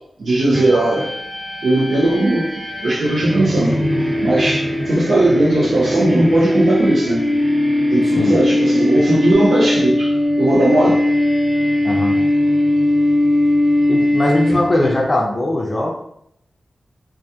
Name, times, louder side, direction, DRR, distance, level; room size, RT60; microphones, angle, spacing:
voice 1, 0.2-1.1 1.6-2.5 2.8-3.8 4.2-7.4 7.9-11.0, right 1 dB, 80° right, -6 dB, 0.5 m, -17 dB
sound 1, 0.5-15.0, left 1 dB, 35° right, 1.1 m, -19 dB
voice 2, 11.8-12.2 13.9-15.9, left 1 dB, 40° left, -1 dB, 0.5 m, -19 dB
2.2 x 2.1 x 2.7 m, 0.73 s
cardioid pair, 45°, 0 cm